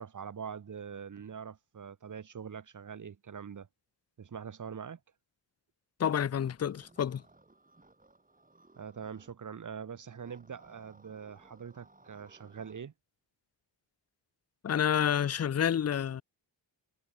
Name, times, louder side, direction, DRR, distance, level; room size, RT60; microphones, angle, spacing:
voice 1, 0.0-3.7 4.2-5.0 8.8-12.9, right 7 dB, 40° right, 0.8 m, -43 dB
voice 2, 6.0-7.2 14.6-16.2, left 9 dB, 35° left, 0.4 m, -29 dB
sound 1, 6.6-9.3 10.2-12.8, right 2 dB, 15° right, 2.6 m, -60 dB
wide cardioid pair, 160°, 47 cm